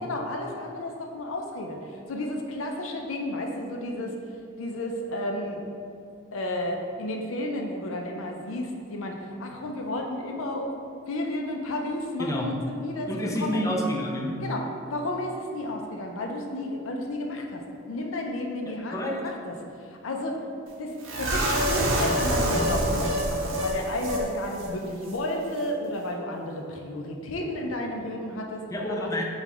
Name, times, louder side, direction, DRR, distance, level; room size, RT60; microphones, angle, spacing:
voice 1, 0.0-1.8 2.1-4.1 4.6-5.6 6.3-10.7 11.1-13.6 14.4-14.6 14.9-17.6 17.9-19.5 20.0-20.4 20.8-29.1, left 1 dB, 90° left, 2 dB, 0.5 m, -32 dB
voice 2, 12.2-12.5 13.1-14.3 18.9-19.2 28.7-29.2, equal, 15° left, -2 dB, 0.4 m, -28 dB
sound 1, 21.0-24.2 24.5-24.7 25.0-25.2, right 1 dB, 80° right, 0.7 m, -26 dB
5.9 x 2.3 x 3.5 m, 2.5 s
head